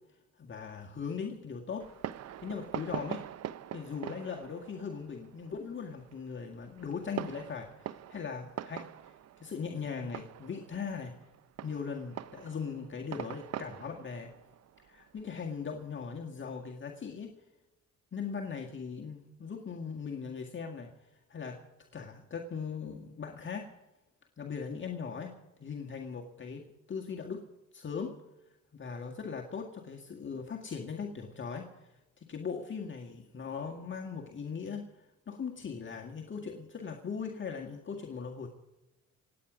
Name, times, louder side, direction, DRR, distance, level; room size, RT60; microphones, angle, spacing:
voice 1, 0.4-1.9 2.4-3.3 3.7-11.2 11.6-14.3 14.8-17.4 18.1-20.9 21.3-21.6 21.9-23.7 24.4-25.4 25.6-27.5 27.7-28.1 28.7-31.7 32.2-38.5, left 6 dB, 40° left, 1 dB, 1.8 m, -39 dB
Fireworks, 1.8-16.0, right 11 dB, 60° right, 0.6 m, -44 dB
27.0 x 9.4 x 5.0 m, 1.0 s
cardioid pair, 90°, 30 cm